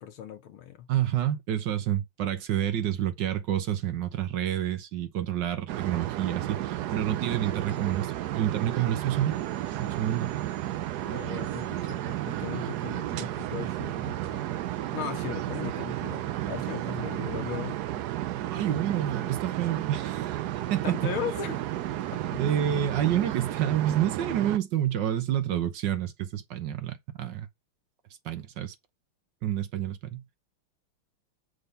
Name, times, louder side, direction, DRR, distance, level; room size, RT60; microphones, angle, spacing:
voice 1, 0.0-0.9 11.1-14.6 14.9-17.8 20.8-22.4, left 9 dB, 75° left, 1.8 m, -38 dB
voice 2, 0.9-9.3 9.8-10.3 18.5-20.4 20.7-20.9 22.4-27.5 28.2-28.7 29.4-30.2, right 11 dB, 65° right, 1.4 m, -28 dB
sound 1, 5.7-24.6, right 13 dB, 80° right, 0.9 m, -32 dB
6.7 x 3.7 x 5.5 m
omnidirectional pair, 2.4 m